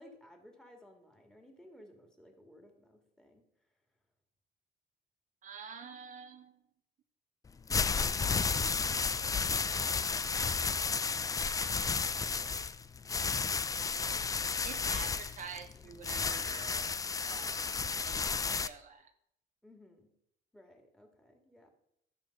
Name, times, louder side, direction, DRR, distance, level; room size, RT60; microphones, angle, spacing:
voice 1, 0.0-3.4 19.6-20.1 20.5-21.7, left 1 dB, 5° left, 2 dB, 2.0 m, -57 dB
voice 2, 5.4-6.6 14.6-16.9 17.2-19.1, right 6 dB, 50° right, 6 dB, 0.8 m, -48 dB
sound 1, 7.5-18.7, left 5 dB, 20° left, 0.4 m, -32 dB
12.5 x 4.6 x 6.6 m, 0.75 s
cardioid pair, 110°, 17 cm